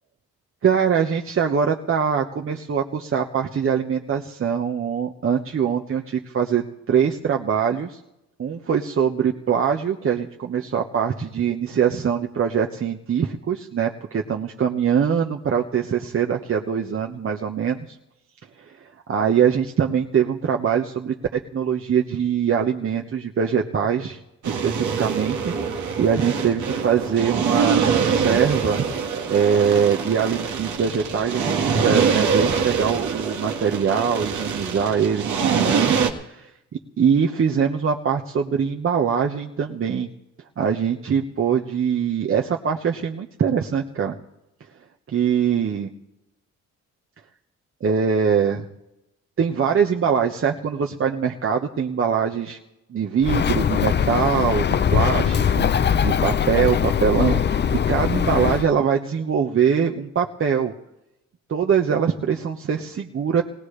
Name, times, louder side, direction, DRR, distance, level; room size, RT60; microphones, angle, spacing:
voice 1, 0.6-8.0 8.4-18.0 18.7-24.2 24.5-28.9 29.3-35.9 36.2-36.5 37.0-40.1 40.6-44.2 45.1-45.9 47.8-48.6 49.4-52.6 52.9-57.4 57.7-60.7 61.5-63.4, right 7 dB, 45° right, 2 dB, 1.2 m, -23 dB
sound 1, 24.4-36.1, right 6 dB, 75° right, 1.8 m, -24 dB
Bird, 53.2-58.7, left 8 dB, 35° left, 0.7 m, -21 dB
19.5 x 18.5 x 3.3 m, 0.89 s
cardioid pair, 90°, 30 cm